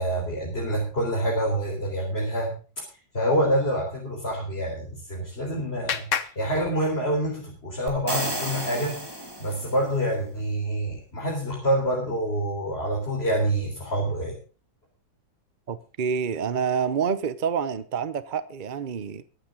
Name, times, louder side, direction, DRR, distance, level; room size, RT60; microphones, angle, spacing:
voice 1, 0.0-2.8 3.1-9.1 9.4-14.4, right 1 dB, 30° left, 4.4 m, -27 dB
Clapping, 4.8-7.4, left 7 dB, 50° left, 1.1 m, -34 dB
sound 1, 7.9-9.9, right 1 dB, 10° right, 2.5 m, -32 dB
voice 2, 15.7-19.2, right 6 dB, 60° right, 0.5 m, -27 dB
22.5 x 8.8 x 3.8 m
omnidirectional pair, 2.0 m